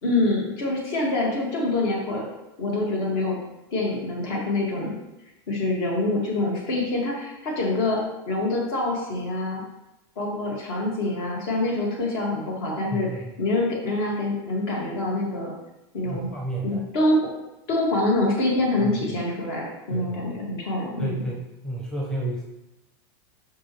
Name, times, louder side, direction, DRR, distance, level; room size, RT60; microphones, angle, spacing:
voice 1, 0.0-2.2 2.6-3.4 3.7-4.9 5.5-8.0 8.3-9.6 10.2-13.1 13.4-15.5 15.9-16.3 16.6-17.3 17.7-21.2, left 2 dB, 60° left, -2 dB, 2.1 m, -25 dB
voice 2, 12.9-13.2 16.0-16.8 18.8-18.9 19.9-20.5 21.0-22.4, right 1 dB, 5° left, -4 dB, 0.8 m, -31 dB
6.0 x 5.7 x 3.2 m, 0.95 s
supercardioid pair, 155°, 14 cm